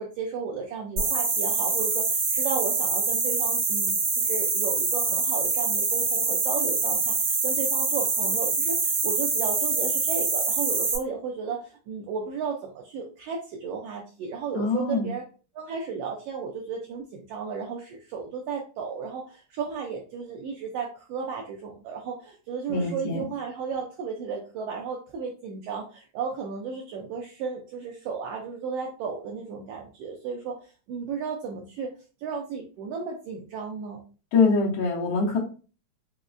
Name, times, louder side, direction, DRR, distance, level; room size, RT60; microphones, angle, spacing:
voice 1, 0.0-15.2 15.5-31.9 32.2-34.0, right 5 dB, 90° right, 1 dB, 1.3 m, -34 dB
sound 1, 1.0-11.0, right 4 dB, 65° right, 1.3 m, -25 dB
voice 2, 14.6-15.1 22.7-23.2 34.3-35.4, left 4 dB, 70° left, -6 dB, 1.8 m, -24 dB
4.8 x 2.1 x 2.4 m, 0.37 s
omnidirectional pair, 3.3 m